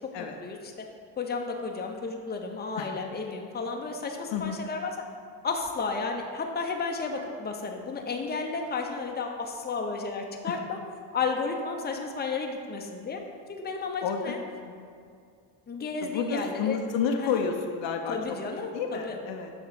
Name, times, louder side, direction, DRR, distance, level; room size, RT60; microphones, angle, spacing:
voice 1, 0.2-0.6 1.2-4.9 5.4-10.8 11.1-13.2 13.5-14.4 15.7-16.8 17.2-17.4 18.1-19.2, left 4 dB, 20° left, 2 dB, 0.8 m, -32 dB
voice 2, 4.3-4.6 10.5-10.6 14.0-14.3 14.6-14.9 16.0-18.4 18.7-19.5, left 6 dB, 65° left, 4 dB, 0.8 m, -30 dB
7.0 x 3.5 x 4.8 m, 2.3 s
supercardioid pair, 70°, 48 cm